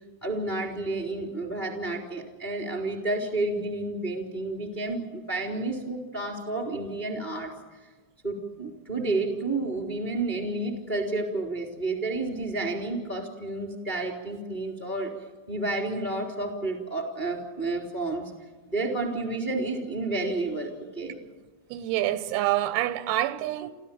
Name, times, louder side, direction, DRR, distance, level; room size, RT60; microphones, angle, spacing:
voice 1, 0.2-7.5 8.2-15.1 15.5-18.3 18.7-21.2, right 2 dB, 10° left, 2.4 m, -30 dB
voice 2, 21.7-23.7, right 14 dB, 90° right, 3.8 m, -27 dB
28.0 x 14.5 x 8.8 m
omnidirectional pair, 5.9 m